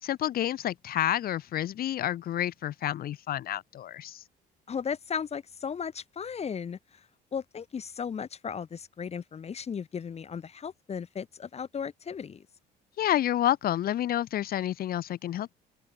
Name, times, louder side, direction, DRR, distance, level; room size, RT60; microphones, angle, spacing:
voice 1, 0.0-4.2 13.0-15.5, left 12 dB, 60° left, 2.9 m, -29 dB
voice 2, 4.7-12.5, left 7 dB, 40° left, 6.2 m, -36 dB
open air
cardioid pair, 110°, 17 cm